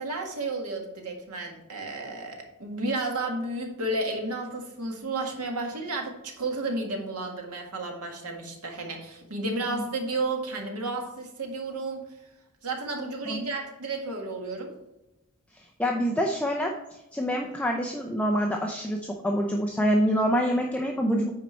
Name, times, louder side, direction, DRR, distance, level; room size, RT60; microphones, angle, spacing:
voice 1, 0.0-12.0 12.6-14.7, right 2 dB, 85° right, 2 dB, 1.8 m, -32 dB
voice 2, 15.8-16.7 17.1-21.3, equal, 5° left, 0 dB, 0.6 m, -26 dB
9.4 x 4.5 x 4.4 m, 0.93 s
head